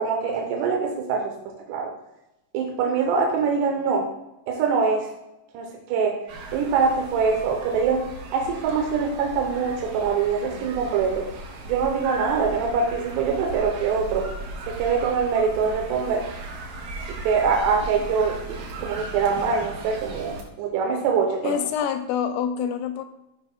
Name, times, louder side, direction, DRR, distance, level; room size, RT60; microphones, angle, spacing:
voice 1, 0.0-1.3 1.7-1.9 2.5-4.1 4.5-5.1 5.5-6.2 6.5-8.0 8.3-11.3 11.7-14.3 14.7-16.3 17.2-21.6, right 5 dB, 90° right, 1 dB, 2.9 m, -24 dB
sound 1, 6.3-20.4, right 2 dB, 65° right, 2.5 m, -37 dB
voice 2, 21.4-23.0, left 8 dB, 85° left, 8 dB, 2.2 m, -26 dB
14.0 x 5.5 x 2.2 m, 0.93 s
omnidirectional pair, 4.7 m